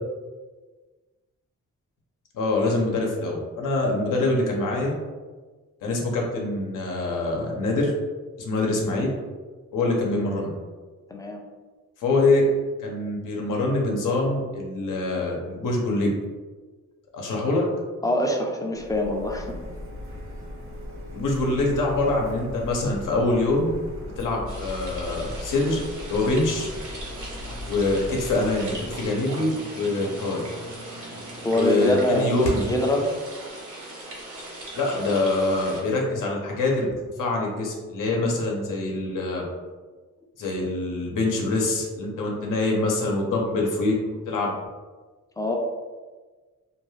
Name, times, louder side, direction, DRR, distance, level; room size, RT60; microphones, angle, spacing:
voice 1, 2.3-4.9 5.8-7.9 8.4-9.1 9.7-10.5 12.0-12.4 12.8-16.1 17.1-17.6 21.1-23.8 24.2-25.8 26.1-26.7 27.7-30.4 31.5-32.7 34.7-36.9 37.2-39.4 40.4-44.0 44.3-44.5, left 2 dB, 85° left, -1 dB, 0.7 m, -24 dB
voice 2, 11.1-11.4 18.0-19.6 31.4-33.1 45.4-45.6, left 1 dB, 10° left, 1 dB, 0.3 m, -25 dB
Printer, 18.7-29.1, left 1 dB, 45° right, 0.6 m, -38 dB
sound 1, 24.5-35.8, right 1 dB, 70° right, 1.0 m, -39 dB
sound 2, 26.2-32.9, left 1 dB, 55° left, 0.7 m, -40 dB
2.5 x 2.3 x 3.1 m, 1.3 s
wide cardioid pair, 110°, 31 cm